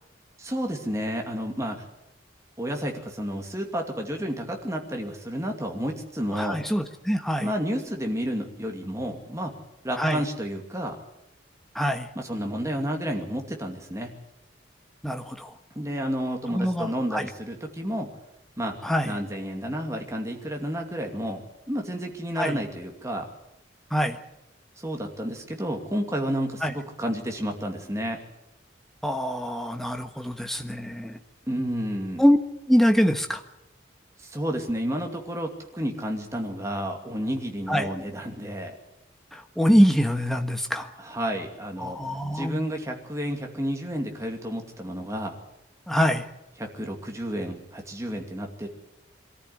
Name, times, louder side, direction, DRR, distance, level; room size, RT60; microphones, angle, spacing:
voice 1, 0.4-1.9 2.6-6.6 7.4-9.5 9.8-11.0 12.1-14.1 15.7-18.1 18.6-18.8 19.0-21.4 21.7-23.3 24.8-28.2 31.5-32.2 34.2-38.7 41.0-42.0 42.3-45.4 46.6-48.7, equal, 15° right, 2 dB, 2.5 m, -31 dB
voice 2, 6.3-7.5 10.0-10.2 11.7-12.1 15.0-15.5 16.5-17.3 18.8-19.1 22.4-22.6 23.9-24.2 26.6-26.7 29.0-31.2 32.2-32.4 32.7-33.4 37.7-37.9 39.3-40.9 41.8-42.6 45.9-46.2, equal, ahead, 5 dB, 1.3 m, -24 dB
23.0 x 14.0 x 9.8 m, 0.88 s
head